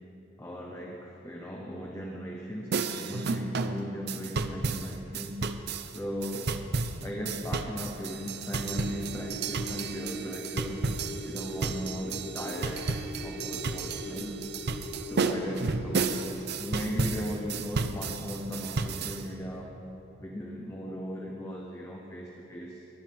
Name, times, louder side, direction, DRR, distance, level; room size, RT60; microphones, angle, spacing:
voice 1, 0.4-5.4 5.9-6.6 7.0-10.8 11.2-12.9 13.2-14.3 15.0-16.2 16.6-19.7 20.2-22.8, equal, 15° left, -1 dB, 0.8 m, -37 dB
sound 1, 2.7-19.2, right 4 dB, 50° right, 0.6 m, -33 dB
sound 2, 8.6-16.3, equal, 75° left, 2.4 m, -41 dB
21.0 x 12.0 x 3.5 m, 3.0 s
head